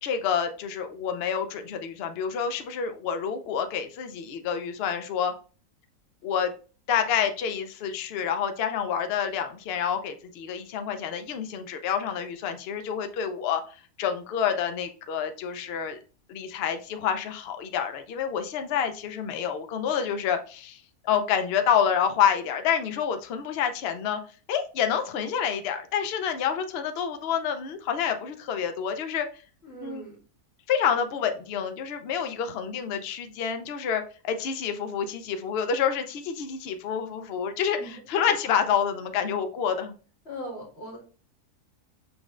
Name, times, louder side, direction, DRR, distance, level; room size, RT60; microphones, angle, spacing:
voice 1, 0.0-5.3 6.2-6.5 6.9-13.6 14.0-16.0 16.3-24.2 24.5-29.3 29.8-30.0 30.7-39.9, left 8 dB, 90° left, 7 dB, 0.5 m, -28 dB
voice 2, 29.6-30.2 37.8-38.0 40.2-41.0, equal, 40° left, -2 dB, 2.0 m, -39 dB
6.5 x 3.1 x 2.4 m, 0.38 s
omnidirectional pair, 1.7 m